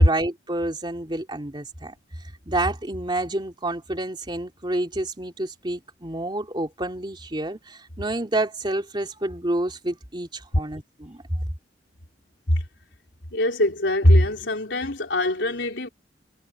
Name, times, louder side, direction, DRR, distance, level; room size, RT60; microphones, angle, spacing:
voice 1, 0.0-1.9 2.5-11.4, right 1 dB, 25° right, 3.0 m, -29 dB
voice 2, 13.3-15.9, left 1 dB, 80° left, 4.1 m, -21 dB
head